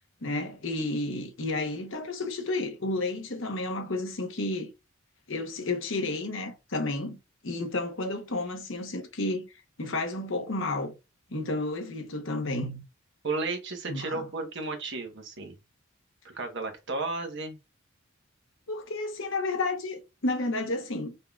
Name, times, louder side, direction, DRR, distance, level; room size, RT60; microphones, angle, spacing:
voice 1, 0.2-4.7 5.3-7.2 7.4-10.9 11.3-12.8 13.9-14.3 18.7-21.3, left 2 dB, 60° left, 1.0 m, -31 dB
voice 2, 13.2-15.5 16.3-17.6, right 3 dB, 55° right, 1.2 m, -33 dB
5.4 x 3.7 x 2.4 m
head